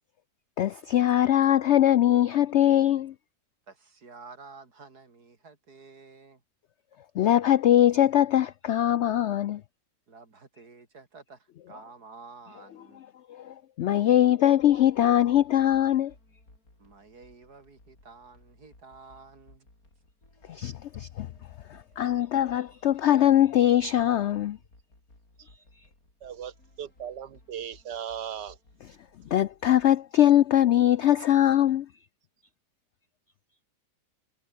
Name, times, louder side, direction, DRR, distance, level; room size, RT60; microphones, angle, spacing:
voice 1, 0.6-3.1 7.2-9.6 13.3-16.1 20.5-21.3 21.7-24.6 28.8-29.0 29.3-31.9, left 12 dB, 85° left, 0.6 m, -22 dB
voice 2, 3.7-6.4 10.1-13.0 16.8-19.7, right 4 dB, 70° right, 3.8 m, -50 dB
sound 1, 14.6-29.9, left 2 dB, 60° left, 8.3 m, -59 dB
voice 3, 26.2-26.5 26.8-28.6, right 9 dB, 85° right, 1.9 m, -37 dB
omnidirectional pair, 1.8 m